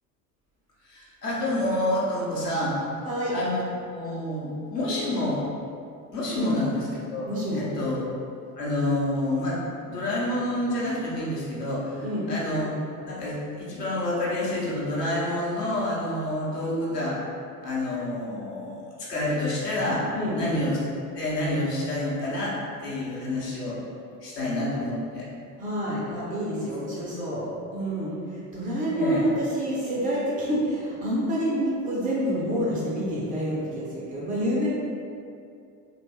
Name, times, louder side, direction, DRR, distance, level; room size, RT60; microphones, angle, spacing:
voice 1, 0.8-2.9 3.3-3.6 3.9-5.4 6.1-6.8 7.1-7.3 7.5-8.0 8.5-12.7 12.9-17.2 17.6-20.1 20.4-20.7 21.1-23.8 24.2-25.3 28.9-29.2, left 1 dB, 80° left, -7 dB, 0.9 m, -28 dB
voice 2, 7.3-7.7 12.0-12.3 20.1-20.4 25.6-27.4 27.7-34.7, equal, 20° right, -7 dB, 0.4 m, -28 dB
2.7 x 2.2 x 3.2 m, 2.5 s
figure-of-eight pair, 70°, 47 cm